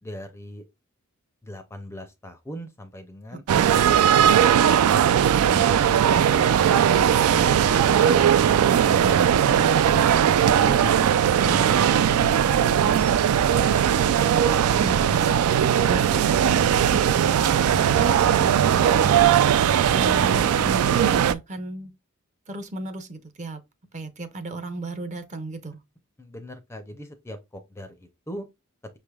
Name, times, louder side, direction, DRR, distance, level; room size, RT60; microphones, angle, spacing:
voice 1, 0.0-0.7 1.4-4.6 10.6-12.6 26.2-28.5, equal, 10° left, 0.4 m, -40 dB
sound 1, 3.5-21.3, right 9 dB, 90° right, 0.3 m, -19 dB
voice 2, 7.3-10.4 11.3-11.8 14.0-15.5 15.9-19.1 19.9-21.9 22.5-23.6 23.9-25.8, right 2 dB, 35° right, 0.6 m, -35 dB
5.4 x 3.2 x 2.2 m
head